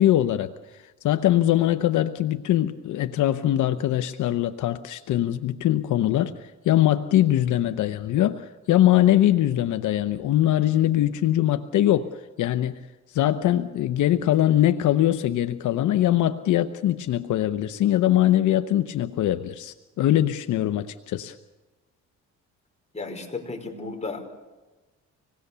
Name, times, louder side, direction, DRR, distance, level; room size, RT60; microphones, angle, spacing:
voice 1, 0.0-12.1 12.4-12.8 13.1-21.3, left 13 dB, 75° left, 9 dB, 0.9 m, -22 dB
voice 2, 22.9-24.3, left 3 dB, 20° left, 2 dB, 5.2 m, -34 dB
26.0 x 19.5 x 6.9 m, 1.2 s
cardioid pair, 90°, 30 cm